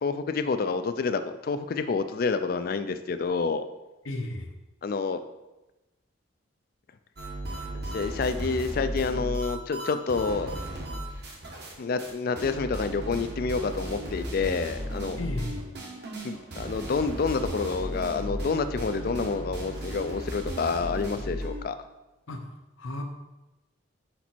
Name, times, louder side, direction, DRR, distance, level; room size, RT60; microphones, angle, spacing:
voice 1, 0.0-3.6 4.8-5.2 7.7-10.5 11.8-15.2 16.2-21.8, left 4 dB, 45° left, 10 dB, 0.3 m, -28 dB
voice 2, 4.0-4.6 15.2-15.7 22.3-23.0, left 1 dB, 80° left, 4 dB, 0.8 m, -35 dB
sound 1, 7.2-11.7 12.0-12.1 12.4-21.6, right 1 dB, 55° right, 1.1 m, -35 dB
5.0 x 4.5 x 4.2 m, 1.0 s
head